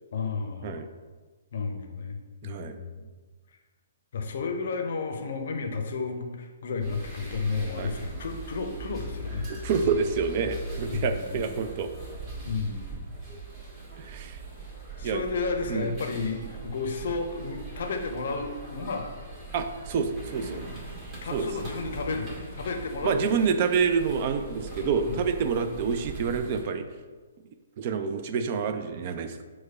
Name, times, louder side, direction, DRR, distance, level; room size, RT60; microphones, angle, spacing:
voice 1, 0.1-0.8 1.5-3.1 4.1-9.5 9.8-9.9 10.8-11.5 12.4-13.1 15.0-19.1 21.2-23.5 24.8-25.2 25.6-25.8, left 4 dB, 55° left, 4 dB, 0.5 m, -32 dB
voice 2, 2.4-2.8 7.8-7.9 9.5-11.9 14.0-14.4 15.0-15.2 15.7-15.9 19.5-20.6 21.3-21.5 23.0-26.9 27.8-29.4, right 6 dB, 40° right, 8 dB, 0.3 m, -28 dB
sound 1, 6.8-26.6, right 3 dB, 25° right, 1.4 m, -41 dB
4.5 x 2.1 x 4.6 m, 1.4 s
figure-of-eight pair, 125°, 0 cm